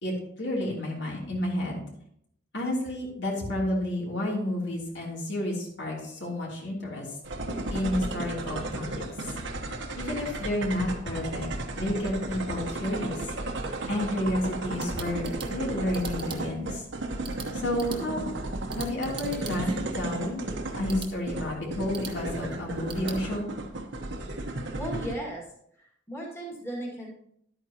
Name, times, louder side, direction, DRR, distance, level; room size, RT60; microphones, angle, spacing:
voice 1, 0.0-1.8 2.5-7.1 7.7-9.1 10.0-13.3 13.9-16.8 17.5-18.3 18.7-20.4 20.8-23.5, left 1 dB, 60° left, -3 dB, 3.1 m, -31 dB
sound 1, 7.2-25.1, right 2 dB, 65° right, 1.1 m, -34 dB
sound 2, 14.5-23.2, right 5 dB, 25° right, 1.2 m, -46 dB
voice 2, 24.8-25.4 26.1-27.1, right 1 dB, 15° left, -4 dB, 2.1 m, -35 dB
11.5 x 9.0 x 2.9 m, 0.70 s
head